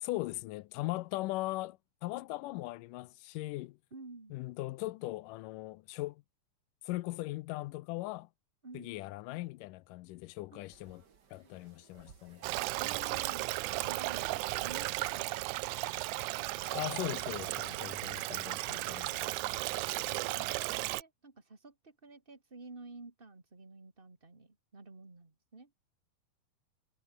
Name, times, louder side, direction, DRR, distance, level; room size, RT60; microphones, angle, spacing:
voice 1, 0.0-3.8 4.3-6.2 6.8-8.3 8.7-11.0 11.3-12.4 16.7-19.1 20.4-20.5, left 19 dB, 80° left, 2.2 m, -39 dB
voice 2, 3.9-4.4 8.6-9.0 10.5-10.7 11.4-11.5 12.8-15.4 20.1-25.7, right 3 dB, 15° right, 2.9 m, -52 dB
sound 1, 10.7-19.3, right 6 dB, 35° right, 2.0 m, -62 dB
Stream, 12.4-21.0, right 20 dB, 80° right, 1.9 m, -35 dB
omnidirectional pair, 3.9 m